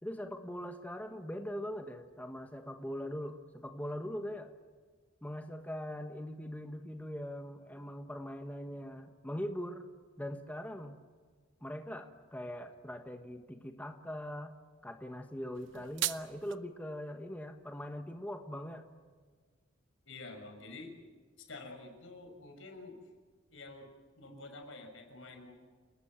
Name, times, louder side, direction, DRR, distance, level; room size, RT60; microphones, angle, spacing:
voice 1, 0.0-4.5 5.2-9.9 10.2-11.0 11.6-14.5 14.8-18.8, equal, 10° left, 5 dB, 1.3 m, -41 dB
sound 1, 15.5-16.6, right 13 dB, 65° right, 0.9 m, -37 dB
voice 2, 20.0-20.9 21.5-23.0 23.5-23.9 24.2-25.5, left 2 dB, 75° left, 4 dB, 6.2 m, -48 dB
29.5 x 19.5 x 7.5 m, 1.5 s
head